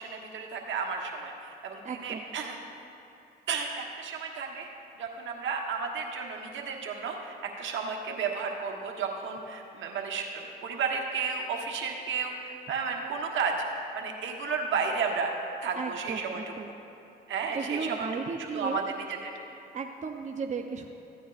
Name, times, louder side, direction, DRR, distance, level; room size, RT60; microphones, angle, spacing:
voice 1, 0.0-2.6 3.5-4.7 5.0-13.7 13.9-15.3 15.6-16.4 17.3-18.1 18.4-19.3, right 5 dB, 70° right, 1 dB, 1.3 m, -33 dB
voice 2, 1.8-2.2 15.8-16.7 17.5-18.9 19.7-20.9, right 5 dB, 35° right, 3 dB, 0.7 m, -35 dB
15.0 x 9.1 x 2.5 m, 2.8 s
supercardioid pair, 55°, 21 cm